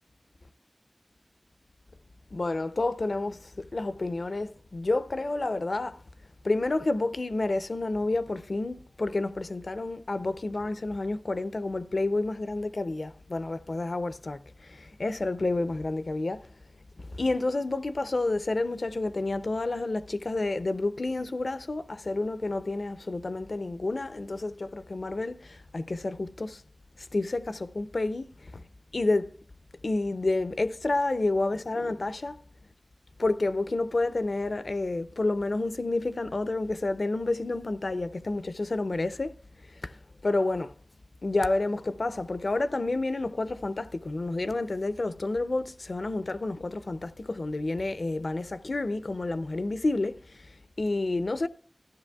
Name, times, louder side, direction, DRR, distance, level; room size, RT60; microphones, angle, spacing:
voice 1, 2.3-6.0 6.4-16.5 17.0-26.6 27.0-28.6 28.9-29.3 29.8-32.4 33.2-39.3 39.7-40.7 41.2-51.5, left 2 dB, 80° left, 0.5 m, -30 dB
17.0 x 12.5 x 2.3 m
wide cardioid pair, 55°, 0 cm